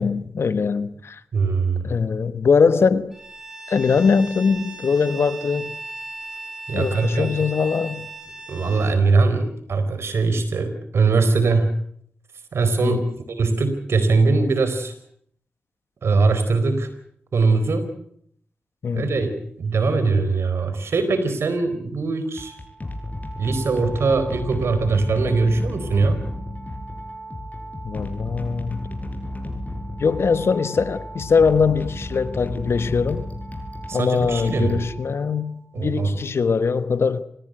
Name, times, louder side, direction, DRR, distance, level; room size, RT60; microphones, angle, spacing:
voice 1, 0.0-1.2 1.8-3.1 3.7-5.8 6.7-8.1 12.8-13.1 18.8-19.2 27.8-28.9 30.0-33.3 33.9-37.2, left 5 dB, 80° left, 1.2 m, -21 dB
voice 2, 1.3-1.9 6.7-7.3 8.5-11.7 12.5-15.0 16.0-16.9 17.3-17.9 18.9-19.3 19.6-22.6 23.4-26.2 33.9-34.8 35.7-36.2, right 4 dB, 90° right, 4.2 m, -21 dB
Bowed string instrument, 3.1-9.0, right 2 dB, 10° right, 7.9 m, -37 dB
sound 1, 22.3-35.5, left 1 dB, 35° left, 7.4 m, -33 dB
27.0 x 17.5 x 8.0 m
cardioid pair, 45°, 4 cm